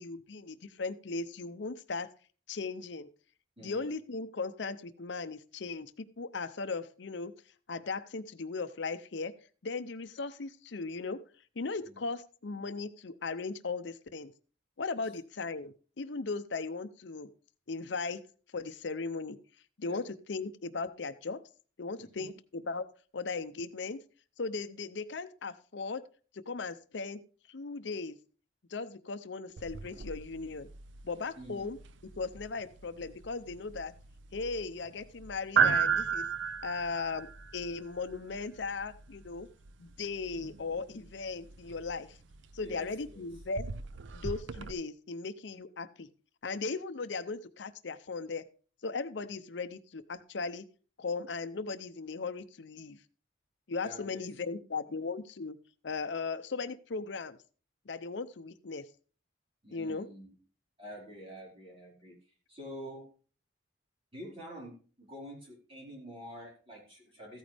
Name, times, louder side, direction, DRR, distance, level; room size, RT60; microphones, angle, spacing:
voice 1, 0.0-2.1 2.5-3.1 3.6-7.3 7.7-9.3 9.6-11.2 11.6-14.3 14.8-17.3 17.7-18.2 18.5-19.4 19.8-21.4 21.8-22.9 23.1-24.0 24.4-26.0 26.3-27.2 27.5-28.2 28.7-30.7 31.0-31.8 32.2-33.9 34.3-36.3 36.6-37.3 37.5-39.5 39.8-42.2 42.5-43.6 44.1-46.1 46.4-48.4 48.8-50.6 51.0-53.0 53.7-55.6 55.8-57.4 57.9-58.8 59.7-60.1, left 4 dB, 70° left, 11 dB, 0.6 m, -37 dB
voice 2, 3.6-3.9 11.8-12.0 19.9-20.0 22.1-22.3 31.4-31.7 42.6-43.3 53.8-54.9 59.6-60.3 60.8-62.2 62.5-63.1 64.1-67.4, equal, 30° right, -3 dB, 4.6 m, -47 dB
sound 1, 29.6-44.7, right 7 dB, 75° right, 0.6 m, -36 dB
14.5 x 9.1 x 3.4 m, 0.39 s
head